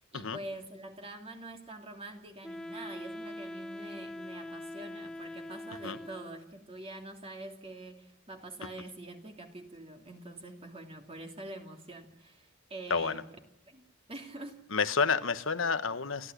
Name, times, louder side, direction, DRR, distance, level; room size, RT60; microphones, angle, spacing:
voice 1, 0.0-13.2 13.7-14.8, right 2 dB, 30° right, 4 dB, 2.9 m, -45 dB
Wind instrument woodwind instrument, 2.4-6.5, left 1 dB, 5° left, 0.9 m, -43 dB
voice 2, 12.9-13.2 14.7-16.3, left 5 dB, 70° left, 12 dB, 1.3 m, -29 dB
29.0 x 12.5 x 10.0 m, 0.79 s
head